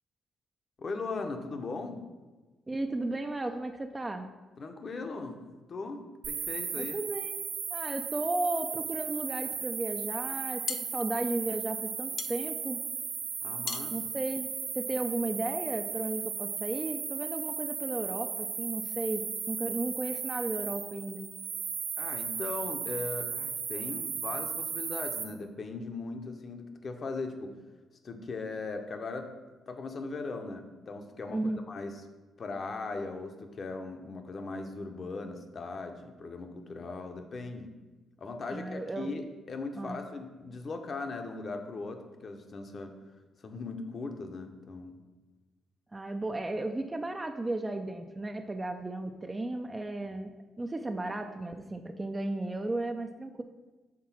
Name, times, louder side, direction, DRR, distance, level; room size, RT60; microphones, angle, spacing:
voice 1, 0.8-2.0 4.6-7.0 13.4-13.9 22.0-27.6 28.0-29.3 29.7-31.4 31.7-31.9 32.4-37.7 38.2-42.9 43.4-45.0, left 3 dB, 45° left, 5 dB, 0.8 m, -39 dB
voice 2, 2.7-4.3 6.7-7.4 7.7-12.8 13.9-14.5 14.7-21.3 31.3-31.6 38.5-39.1 39.8-40.0 45.9-50.3 50.6-53.4, right 2 dB, 20° right, 5 dB, 0.4 m, -34 dB
sound 1, 6.2-25.2, right 6 dB, 70° right, 0.8 m, -36 dB
sound 2, 10.3-15.2, left 7 dB, 60° left, 0.4 m, -41 dB
5.9 x 3.7 x 5.8 m, 1.2 s
cardioid pair, 90°, 0 cm